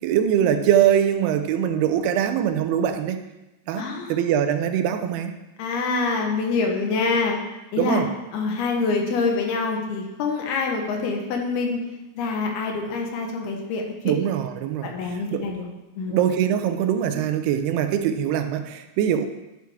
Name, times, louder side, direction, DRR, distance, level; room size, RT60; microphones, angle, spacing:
voice 1, 0.0-3.2 3.7-5.3 7.8-8.1 14.1-15.5 16.1-19.3, right 9 dB, 90° right, 8 dB, 2.7 m, -22 dB
voice 2, 3.8-4.2 5.6-7.4 7.7-8.0 8.3-11.8 12.2-13.8 14.8-15.7 16.0-16.2, left 4 dB, 80° left, 2 dB, 3.0 m, -25 dB
11.5 x 6.1 x 3.5 m, 1.0 s
omnidirectional pair, 4.5 m